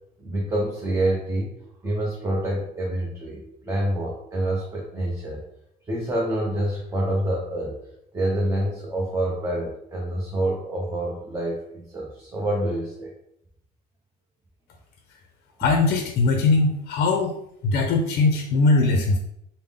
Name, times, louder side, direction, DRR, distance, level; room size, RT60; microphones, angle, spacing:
voice 1, 0.2-1.5 1.8-5.4 5.9-7.8 8.1-13.1, right 1 dB, 15° right, -3 dB, 0.7 m, -27 dB
voice 2, 15.6-17.4 17.6-19.2, left 3 dB, 70° left, 3 dB, 0.5 m, -20 dB
3.5 x 2.0 x 3.5 m, 0.75 s
cardioid pair, 110°, 17 cm